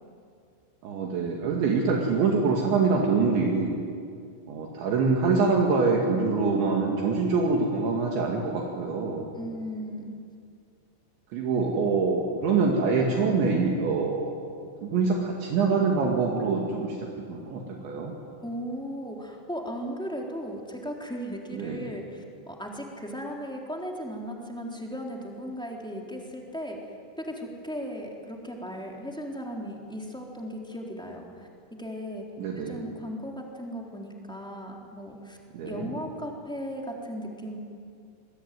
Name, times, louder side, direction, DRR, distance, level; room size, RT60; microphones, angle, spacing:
voice 1, 0.8-3.8 4.5-9.3 11.3-14.3 14.8-18.1 21.5-21.8 32.4-32.8 35.5-35.9, right 4 dB, 70° right, -1 dB, 4.5 m, -25 dB
voice 2, 9.3-10.2 18.4-26.8 27.2-32.2 32.5-35.4 35.6-37.6, equal, ahead, -1 dB, 2.8 m, -36 dB
26.5 x 22.5 x 9.5 m, 2.3 s
omnidirectional pair, 5.6 m